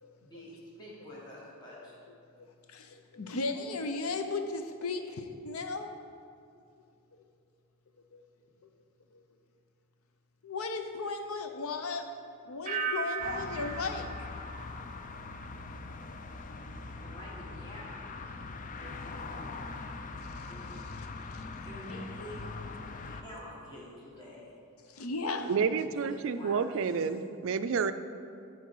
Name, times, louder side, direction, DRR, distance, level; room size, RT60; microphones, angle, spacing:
voice 1, 0.2-2.0 17.0-17.9 18.8-19.7 20.4-20.8 21.5-22.5 23.0-24.5 25.8-26.9, equal, 20° left, -7 dB, 1.7 m, -47 dB
voice 2, 2.4-5.9 8.1-8.2 9.1-9.2 10.4-12.1 12.4-14.1 20.2-21.7 24.9-25.5, left 3 dB, 75° left, 6 dB, 0.7 m, -36 dB
sound 1, 12.7-15.5 15.8-16.3, right 6 dB, 35° right, 0.8 m, -38 dB
sound 2, 13.2-23.2, left 3 dB, 35° left, 0.4 m, -42 dB
voice 3, 25.4-27.9, right 5 dB, 60° right, 11 dB, 0.4 m, -29 dB
13.0 x 4.5 x 4.6 m, 2.5 s
head